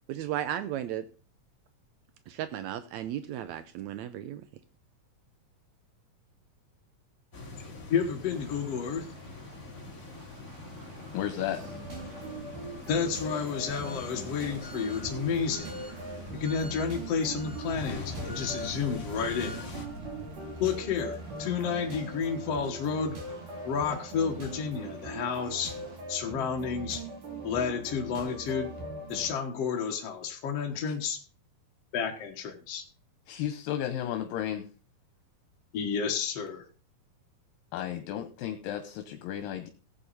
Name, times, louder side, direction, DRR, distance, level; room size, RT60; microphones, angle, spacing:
voice 1, 0.1-1.0 2.3-4.4, right 11 dB, 85° right, 12 dB, 1.6 m, -35 dB
sound 1, 7.3-19.8, left 3 dB, 25° left, 2.9 m, -44 dB
voice 2, 7.9-9.1 12.9-15.8 16.3-19.6 20.6-23.2 23.6-25.7 26.1-27.0 27.4-28.7 29.1-31.2 31.9-32.8 35.7-36.6, left 6 dB, 55° left, 1 dB, 2.1 m, -31 dB
sound 2, 8.3-26.0, right 2 dB, 40° right, 3.3 m, -48 dB
voice 3, 11.1-11.6 33.3-34.7 37.7-39.7, left 11 dB, 80° left, 7 dB, 2.7 m, -33 dB
sound 3, 11.6-29.3, right 1 dB, 65° right, 4.6 m, -41 dB
16.0 x 8.6 x 4.1 m, 0.35 s
omnidirectional pair, 4.0 m